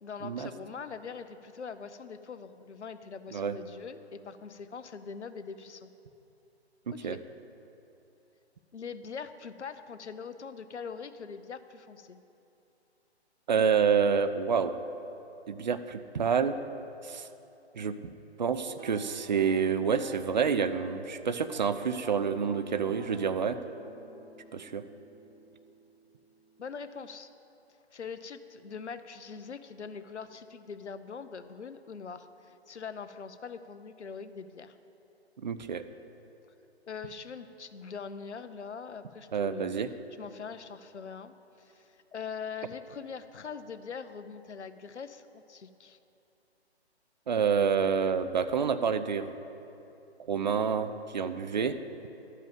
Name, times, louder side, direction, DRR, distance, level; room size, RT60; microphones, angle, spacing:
voice 1, 0.0-5.9 6.9-7.2 8.7-12.2 26.6-27.3 27.9-34.8 36.8-39.8 40.2-46.0, left 6 dB, 85° left, 11 dB, 0.7 m, -42 dB
voice 2, 6.9-7.2 13.5-14.7 15.5-16.5 17.0-17.3 17.8-18.0 18.4-23.6 24.5-24.8 35.4-35.8 39.3-39.9 47.3-49.3 50.2-51.8, right 6 dB, 45° right, 11 dB, 0.4 m, -28 dB
sound 1, 18.7-21.0 21.3-21.7 22.0-25.9, right 2 dB, 60° right, 2.2 m, -49 dB
12.0 x 5.5 x 7.3 m, 2.9 s
figure-of-eight pair, 145°, 33 cm